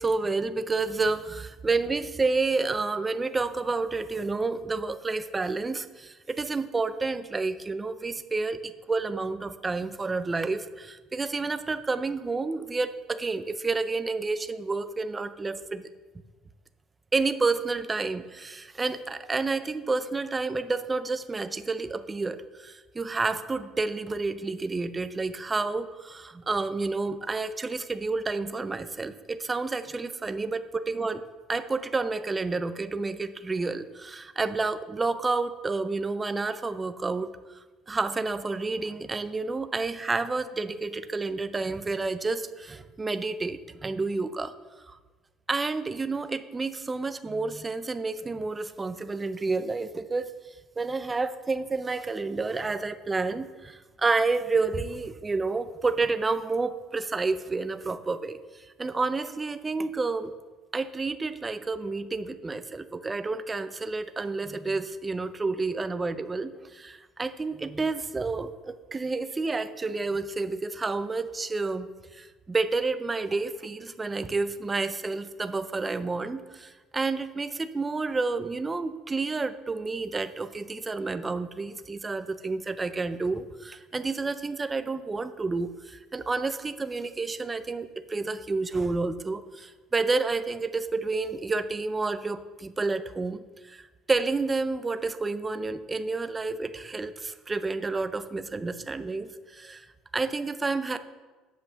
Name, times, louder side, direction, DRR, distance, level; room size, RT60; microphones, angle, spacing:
voice 1, 0.0-15.9 17.1-31.2 31.5-44.5 44.8-45.0 45.5-50.3 50.8-60.3 60.7-99.9 100.1-101.0, right 3 dB, 15° right, 11 dB, 0.4 m, -30 dB
8.7 x 5.3 x 6.7 m, 1.3 s
cardioid pair, 155°, 0 cm